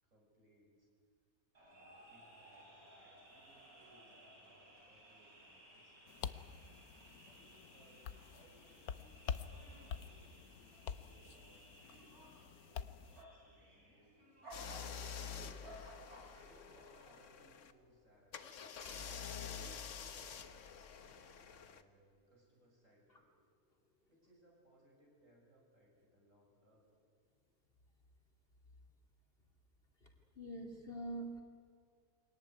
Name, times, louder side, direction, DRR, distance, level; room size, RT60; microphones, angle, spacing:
voice 1, 0.0-0.9 1.7-6.2 7.0-14.2 15.2-23.3 24.1-26.9, equal, 60° right, -1 dB, 7.1 m, -69 dB
sound 1, 1.5-17.2, equal, 85° right, 4.8 m, -59 dB
sound 2, 6.1-13.2, left 7 dB, 80° left, 1.3 m, -47 dB
sound 3, 14.5-17.7 18.3-21.8, left 7 dB, 60° left, 1.4 m, -48 dB
voice 2, 14.7-15.6 16.3-16.5 18.8-19.0 20.0-20.1 23.1-23.2 30.0-31.4, right 1 dB, 40° left, 2 dB, 2.8 m, -48 dB
24.0 x 18.5 x 9.6 m, 2.2 s
omnidirectional pair, 1.5 m